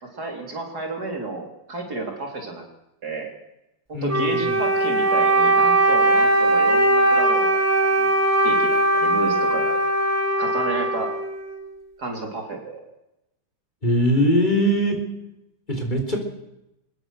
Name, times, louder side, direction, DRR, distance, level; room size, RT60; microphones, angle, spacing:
voice 1, 0.0-2.6 3.0-3.3 3.9-8.1 8.4-9.8 10.4-11.1 12.0-12.8, right 3 dB, 55° right, 2 dB, 4.0 m, -31 dB
voice 2, 3.9-4.6 13.8-15.0 15.7-16.2, equal, 25° left, 3 dB, 4.5 m, -21 dB
Wind instrument woodwind instrument, 4.1-11.6, right 2 dB, 5° right, 4.4 m, -20 dB
24.0 x 20.5 x 6.5 m, 0.89 s
omnidirectional pair, 2.1 m